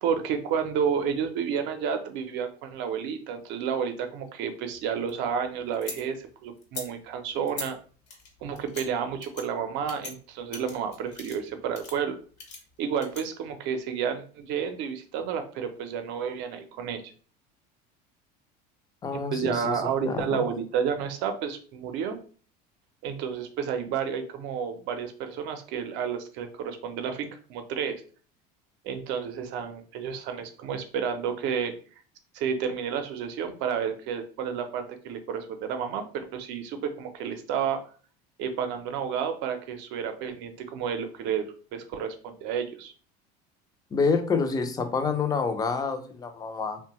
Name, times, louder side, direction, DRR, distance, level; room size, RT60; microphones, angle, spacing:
voice 1, 0.0-7.8 8.4-12.2 12.8-17.0 19.1-22.2 23.0-28.0 28.8-31.7 32.3-37.8 38.4-41.4 41.7-42.9, right 7 dB, 60° right, 7 dB, 0.6 m, -31 dB
sound 1, 4.7-6.0 6.6-6.9 7.5-7.7 8.1-8.8 9.2-9.4 9.9-10.1 10.5-11.5 11.7-11.9 12.4-13.2, left 4 dB, 60° left, 1.1 m, -40 dB
voice 2, 19.0-20.4 43.9-46.8, left 5 dB, 20° left, 7 dB, 0.4 m, -28 dB
2.6 x 2.1 x 2.9 m, 0.41 s
supercardioid pair, 105°, 21 cm